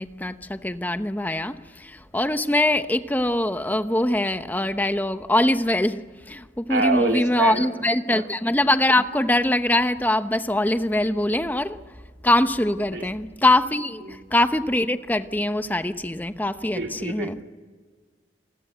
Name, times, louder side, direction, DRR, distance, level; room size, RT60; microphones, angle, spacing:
voice 1, 0.0-11.8 12.2-17.4, left 1 dB, 10° left, 0.9 m, -23 dB
voice 2, 6.7-7.7 8.1-8.3 12.9-13.1 14.1-14.2 16.6-17.4, right 2 dB, 75° right, 2.9 m, -27 dB
28.0 x 20.5 x 8.0 m
head